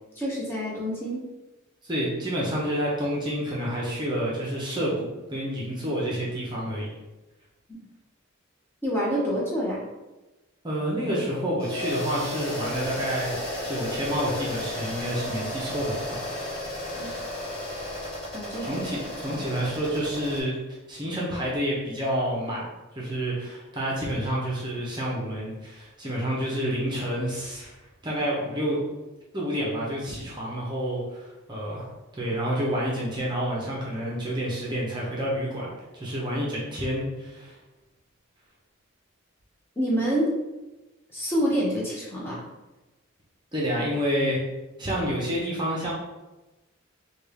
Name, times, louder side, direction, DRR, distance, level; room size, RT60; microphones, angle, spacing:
voice 1, 0.2-1.2 7.7-7.8 8.8-9.8 16.9-17.1 18.3-18.8 19.3-19.4 39.8-40.3 41.1-42.4, equal, 10° left, -6 dB, 0.7 m, -27 dB
voice 2, 1.8-6.9 10.6-13.3 13.6-16.2 18.6-20.6 20.9-22.7 22.9-27.7 28.0-28.8 29.3-31.9 32.2-37.6 43.5-44.4 44.8-45.9, equal, 20° right, -5 dB, 0.7 m, -29 dB
sound 1, 11.6-20.4, left 1 dB, 25° left, 1.1 m, -33 dB
3.3 x 2.3 x 3.3 m, 1.1 s
head